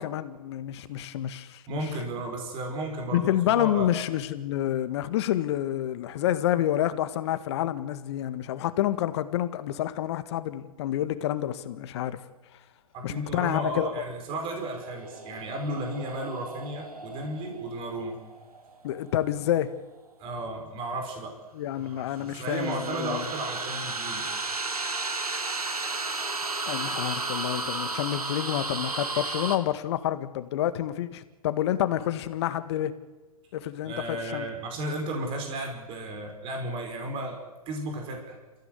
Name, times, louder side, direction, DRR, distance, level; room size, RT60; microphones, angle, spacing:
voice 1, 0.0-1.8 3.1-12.2 13.0-13.9 18.8-19.7 21.5-23.3 26.7-32.9 33.5-34.5, left 12 dB, 45° left, 12 dB, 1.8 m, -28 dB
voice 2, 1.7-3.9 12.9-18.2 20.2-21.3 21.8-24.3 33.8-38.4, right 1 dB, 30° right, 3 dB, 5.6 m, -34 dB
sound 1, 14.4-19.6 22.0-29.6, right 3 dB, 85° right, 2.5 m, -34 dB
30.0 x 15.5 x 8.1 m, 1.2 s
figure-of-eight pair, 120°, 19 cm